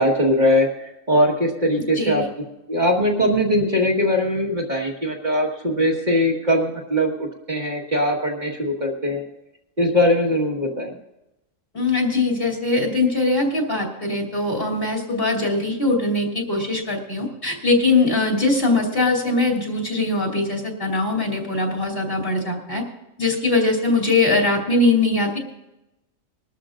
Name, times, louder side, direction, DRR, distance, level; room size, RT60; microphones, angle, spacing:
voice 1, 0.0-2.2 2.7-9.2 9.8-10.9, left 1 dB, 35° right, -2 dB, 1.8 m, -21 dB
voice 2, 1.8-2.3 11.7-22.8 23.2-25.4, left 2 dB, 45° left, -1 dB, 3.0 m, -21 dB
22.0 x 13.0 x 2.6 m, 0.91 s
omnidirectional pair, 1.4 m